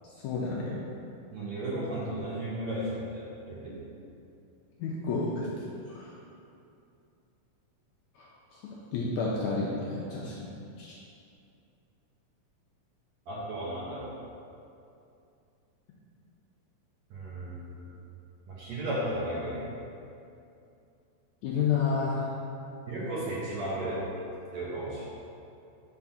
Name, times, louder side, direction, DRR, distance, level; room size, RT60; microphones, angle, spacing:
voice 1, 0.2-0.7 4.8-6.1 8.1-8.6 8.9-10.5 10.8-10.9 21.4-22.3, left 4 dB, 80° left, -4 dB, 1.7 m, -31 dB
voice 2, 1.3-3.8 13.3-14.1 17.1-17.8 18.5-19.7 22.9-24.1 24.5-25.1, right 1 dB, 65° right, -6 dB, 1.9 m, -34 dB
5.8 x 3.6 x 5.7 m, 2.6 s
omnidirectional pair, 3.9 m